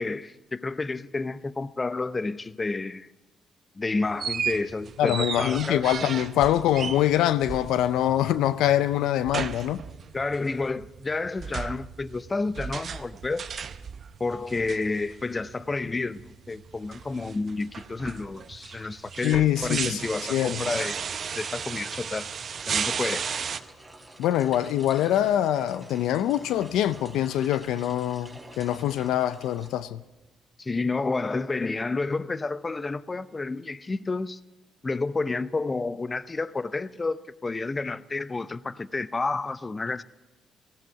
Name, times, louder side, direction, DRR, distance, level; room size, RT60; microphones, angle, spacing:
voice 1, 0.0-3.1 3.8-5.8 10.1-13.5 14.2-21.0 21.4-22.3 22.7-23.3 30.6-34.4 34.8-40.0, left 3 dB, 30° left, 0.6 m, -30 dB
sound 1, 4.0-23.6, right 7 dB, 55° right, 0.8 m, -35 dB
voice 2, 5.0-9.8 19.2-20.0 20.3-20.6 24.2-30.0, left 12 dB, 80° left, 0.5 m, -24 dB
sound 2, 21.9-30.2, right 2 dB, 10° right, 4.1 m, -48 dB
18.5 x 15.5 x 4.7 m
supercardioid pair, 65°, 0 cm